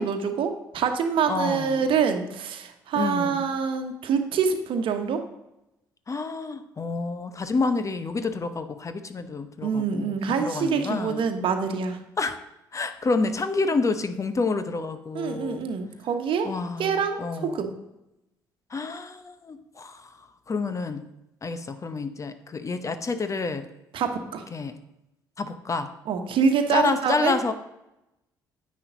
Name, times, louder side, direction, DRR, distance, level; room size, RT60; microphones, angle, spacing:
voice 1, 0.0-5.2 9.6-12.0 15.1-17.7 23.9-24.5 26.1-27.5, right 6 dB, 55° right, 6 dB, 1.2 m, -26 dB
voice 2, 1.3-1.8 2.9-3.4 6.1-11.2 12.2-12.4 12.7-15.6 16.4-17.6 18.7-20.0 20.5-21.0 21.4-23.7 24.5-24.8 25.4-25.9 26.7-27.5, left 3 dB, 30° left, 10 dB, 0.9 m, -28 dB
10.0 x 8.6 x 3.8 m, 0.90 s
figure-of-eight pair, 45°, 10 cm